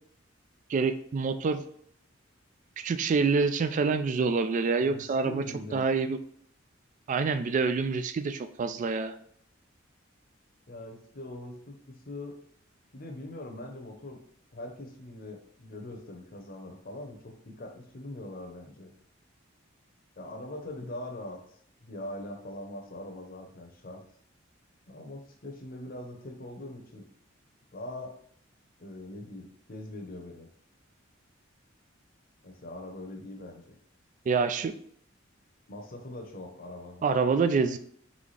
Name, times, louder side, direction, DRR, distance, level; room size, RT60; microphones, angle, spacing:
voice 1, 0.7-1.6 2.8-5.4 5.7-6.2 7.1-9.1 34.3-34.7 37.0-37.8, right 4 dB, 40° right, 10 dB, 0.3 m, -26 dB
voice 2, 4.9-5.8 10.7-12.4 12.9-14.2 14.5-18.9 20.2-21.4 21.8-24.0 24.9-27.0 27.7-28.2 28.8-30.5 32.4-33.7 35.7-37.1, left 1 dB, 45° left, 3 dB, 0.8 m, -42 dB
4.0 x 3.5 x 3.3 m, 0.65 s
head